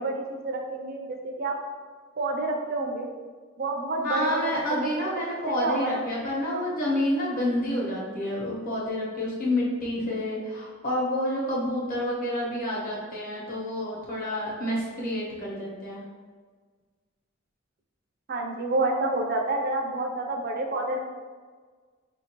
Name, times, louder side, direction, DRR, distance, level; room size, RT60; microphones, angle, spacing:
voice 1, 0.0-1.6 2.2-3.1 3.6-4.9 5.5-6.0 6.5-6.6 18.3-21.0, right 2 dB, 50° right, 2 dB, 0.5 m, -29 dB
voice 2, 4.0-16.0, left 1 dB, 45° left, -5 dB, 1.1 m, -29 dB
4.9 x 2.7 x 2.9 m, 1.5 s
head